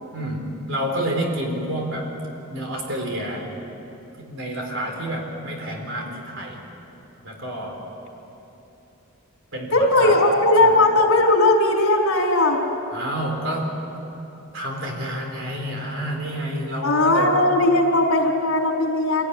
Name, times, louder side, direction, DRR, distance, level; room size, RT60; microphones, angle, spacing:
voice 1, 0.1-2.1 2.5-3.5 4.2-6.7 7.2-7.8 9.5-10.2 10.6-10.7 12.9-13.8 14.4-17.3, right 1 dB, 60° right, 1 dB, 4.2 m, -29 dB
voice 2, 9.7-12.6 16.8-19.3, left 2 dB, 75° left, -1 dB, 4.3 m, -18 dB
26.0 x 16.5 x 9.8 m, 3.0 s
head